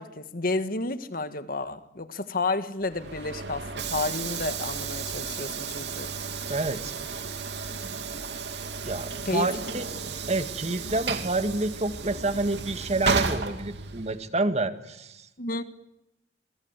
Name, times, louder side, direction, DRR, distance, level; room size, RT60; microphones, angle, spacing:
voice 1, 0.0-6.1 9.3-9.5 15.4-15.6, left 2 dB, 55° left, 11 dB, 1.8 m, -31 dB
Train / Sliding door, 2.8-14.3, right 5 dB, 75° right, 2.8 m, -33 dB
voice 2, 6.5-7.0 8.8-9.9 10.3-15.3, right 2 dB, 40° right, 9 dB, 2.0 m, -28 dB
28.5 x 24.5 x 8.3 m, 0.87 s
head